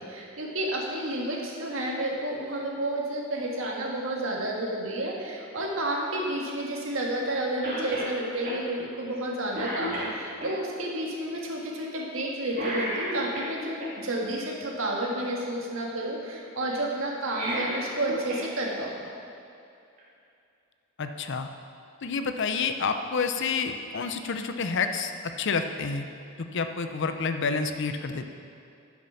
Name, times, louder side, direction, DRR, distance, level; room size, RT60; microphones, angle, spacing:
voice 1, 0.0-18.9, right 1 dB, 75° right, -2 dB, 1.7 m, -31 dB
Cough, 7.6-8.1 8.4-8.6 9.1-9.3 9.5-10.5 12.5-13.9 17.1-18.5 18.8-18.9 20.0-20.1, equal, 45° right, 2.3 m, -33 dB
voice 2, 21.0-21.5 22.0-26.1 26.4-28.3, left 5 dB, 60° left, 7 dB, 0.6 m, -29 dB
11.0 x 6.1 x 5.8 m, 2.6 s
head